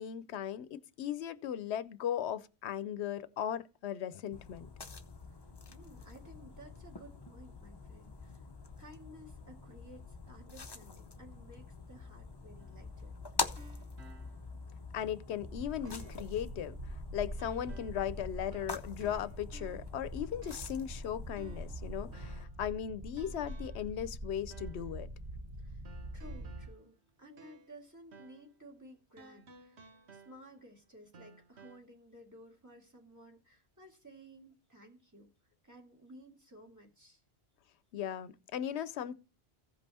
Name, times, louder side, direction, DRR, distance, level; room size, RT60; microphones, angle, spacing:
voice 1, 0.0-4.7 14.9-25.1 37.9-39.1, left 9 dB, 85° left, 0.9 m, -37 dB
sound 1, 4.3-22.4, left 4 dB, 30° left, 0.6 m, -45 dB
voice 2, 5.7-8.5 8.8-13.1 25.6-25.8 26.1-35.3 35.6-37.2, equal, 15° right, 2.2 m, -55 dB
sound 2, 12.6-14.7 15.1-15.2 15.8-16.4 17.4-18.1 18.5-20.0 20.4-20.9 21.4-22.6 23.2-23.9 24.5-24.9 25.8-27.8 28.1-28.5 29.2-30.7 31.1-31.8, right 4 dB, 85° right, 1.3 m, -57 dB
sound 3, 15.4-26.7, equal, 35° right, 1.1 m, -44 dB
15.5 x 5.3 x 4.2 m
omnidirectional pair, 1.1 m